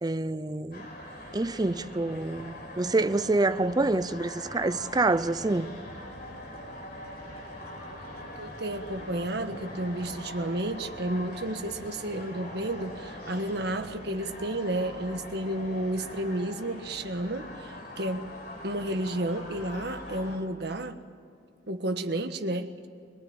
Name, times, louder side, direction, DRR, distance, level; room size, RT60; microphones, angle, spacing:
voice 1, 0.0-0.9 1.3-5.7, right 2 dB, 20° right, 0.6 m, -27 dB
sound 1, 0.7-20.4, left 1 dB, 60° left, 5.1 m, -42 dB
voice 2, 8.4-18.3 18.6-21.0 21.7-22.9, right 1 dB, 65° right, 1.5 m, -32 dB
25.0 x 19.5 x 8.9 m
head